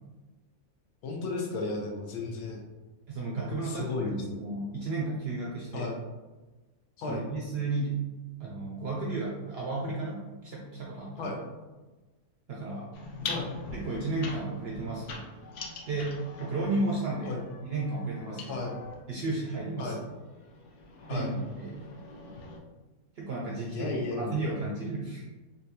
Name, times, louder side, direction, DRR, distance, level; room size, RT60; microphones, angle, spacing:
voice 1, 1.0-2.6 3.6-4.2 5.7-6.0 7.0-7.2 11.2-11.4 13.3-13.5 17.3-17.4 18.5-18.7 19.8-20.0 21.1-21.3 23.6-24.5, left 3 dB, 90° left, 0 dB, 1.2 m, -34 dB
voice 2, 3.1-5.9 7.1-8.0 8.4-11.3 12.5-12.9 13.7-15.3 15.9-17.4 17.7-18.6 19.1-20.1 21.1-21.9 23.2-25.2, right 2 dB, 70° right, -3 dB, 0.6 m, -33 dB
sound 1, 12.9-19.0 19.8-22.6, left 3 dB, 65° left, 0.8 m, -42 dB
4.0 x 2.2 x 2.7 m, 1.2 s
omnidirectional pair, 1.6 m